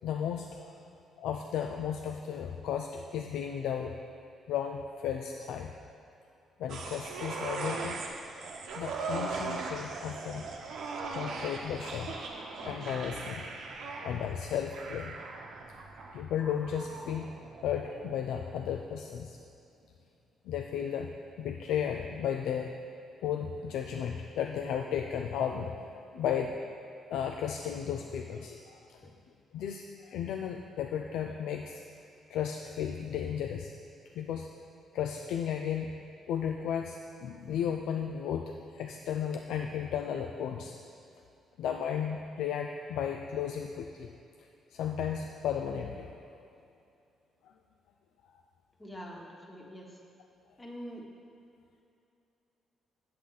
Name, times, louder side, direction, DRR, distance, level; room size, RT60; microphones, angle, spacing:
voice 1, 0.0-0.7 1.2-4.0 4.5-5.7 6.6-8.0 8.7-10.5 11.1-12.1 12.6-13.5 14.0-15.2 16.1-17.4 17.6-19.4 20.5-21.1 21.4-22.7 23.2-25.7 26.1-26.6 27.1-29.1 29.5-31.8 32.3-33.7 34.1-34.5 34.9-36.0 36.3-40.7 41.6-44.1 44.4-46.3 47.4-47.5, left 8 dB, 85° left, 3 dB, 0.4 m, -34 dB
sound 1, 6.7-18.2 18.6-18.7, right 3 dB, 75° right, 0.9 m, -39 dB
voice 2, 48.8-50.0 50.6-51.0, equal, 15° left, -1 dB, 1.4 m, -44 dB
8.4 x 7.7 x 4.0 m, 2.7 s
cardioid pair, 90°, 0 cm